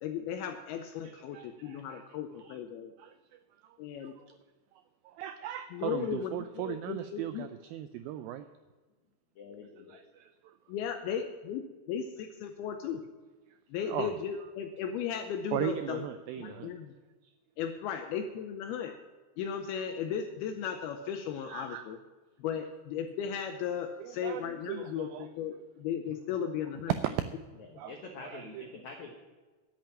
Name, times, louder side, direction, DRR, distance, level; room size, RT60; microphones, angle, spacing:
voice 1, 0.0-2.9 3.8-4.1 5.7-7.5 10.7-13.0 13.7-16.0 16.4-16.9 17.6-18.9 19.4-22.0 22.4-26.9 27.7-27.8, left 7 dB, 80° left, 5 dB, 2.5 m, -36 dB
voice 2, 1.0-2.0 2.3-2.6 3.0-4.4 4.7-8.5 9.9-10.6 13.5-13.6 13.8-14.1 15.5-16.7 17.2-17.3 21.4-21.8 24.0-25.3 26.3-26.4 26.9-27.5 27.8-28.8, right 11 dB, 90° right, 10 dB, 2.0 m, -38 dB
voice 3, 9.4-10.0 16.3-16.6 27.9-29.1, left 4 dB, 65° left, 2 dB, 1.9 m, -46 dB
10.5 x 8.9 x 8.9 m, 1.3 s
omnidirectional pair, 4.8 m